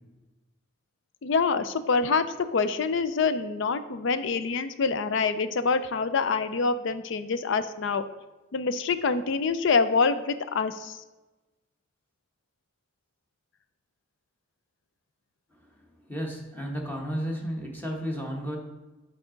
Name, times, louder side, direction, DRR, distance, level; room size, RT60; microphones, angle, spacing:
voice 1, 1.2-2.3 2.5-8.0 8.5-11.0, left 4 dB, 65° left, 12 dB, 0.4 m, -26 dB
voice 2, 16.1-18.6, equal, 10° left, 0 dB, 1.1 m, -33 dB
8.5 x 4.8 x 3.8 m, 1.1 s
head